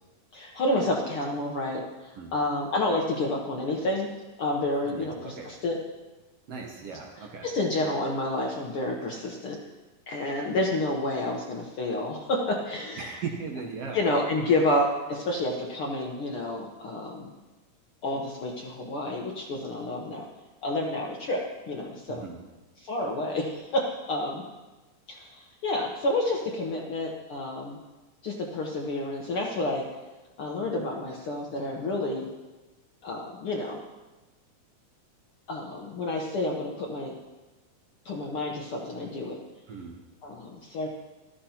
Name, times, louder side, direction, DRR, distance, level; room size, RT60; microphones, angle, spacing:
voice 1, 0.3-4.1 4.4-5.8 7.4-9.6 10.1-13.2 13.9-17.3 18.0-20.2 20.6-22.2 22.8-24.4 25.1-27.8 28.2-29.8 30.4-32.3 33.0-33.8 35.5-37.1 38.0-39.4 40.2-40.9, left 2 dB, 60° left, 0 dB, 1.5 m, -29 dB
voice 2, 4.8-5.5 6.5-7.5 13.0-14.0 22.1-22.4 39.7-40.0, right 5 dB, 65° right, 1 dB, 1.7 m, -38 dB
14.5 x 12.5 x 2.9 m, 1.1 s
omnidirectional pair, 3.6 m